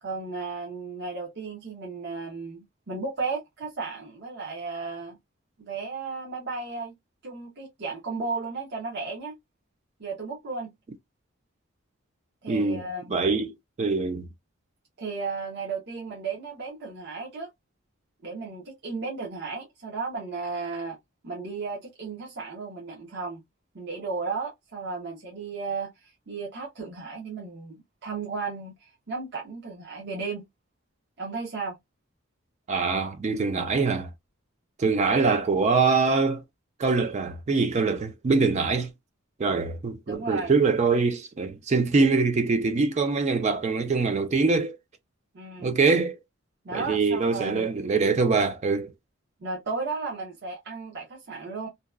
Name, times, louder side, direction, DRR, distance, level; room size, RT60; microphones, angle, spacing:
voice 1, 0.0-5.2 5.6-6.9 7.2-9.3 10.0-10.7 12.4-13.2 15.0-17.5 18.2-21.0 21.2-23.4 23.7-25.9 26.3-30.4 31.2-31.8 40.1-40.5 45.3-45.7 46.6-47.7 49.4-51.7, right 4 dB, 55° right, 0.8 m, -34 dB
voice 2, 12.5-13.5 13.8-14.3 32.7-34.1 34.8-36.4 36.8-38.9 39.4-44.8 45.6-46.2 46.7-48.9, right 4 dB, 35° right, 0.4 m, -24 dB
2.8 x 2.2 x 2.2 m
head